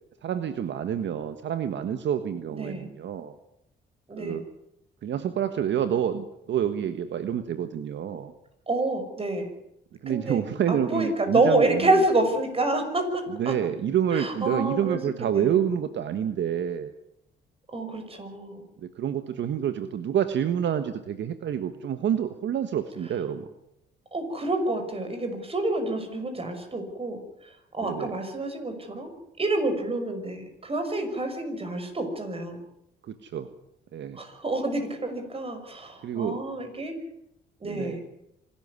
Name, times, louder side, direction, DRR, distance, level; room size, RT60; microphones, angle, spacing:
voice 1, 0.2-3.3 4.2-4.4 5.0-8.3 10.0-11.9 13.4-16.9 18.8-23.5 27.8-28.1 33.1-33.5 33.9-34.2 36.0-36.4 37.6-38.0, right 9 dB, 65° right, 10 dB, 1.5 m, -28 dB
voice 2, 2.5-2.9 4.1-4.4 8.7-9.5 10.1-13.5 14.1-15.8 17.7-18.6 24.1-29.1 29.4-32.6 34.1-37.0 37.6-38.0, right 2 dB, 30° right, 7 dB, 6.0 m, -28 dB
26.0 x 13.0 x 9.7 m, 0.81 s
cardioid pair, 90°, 20 cm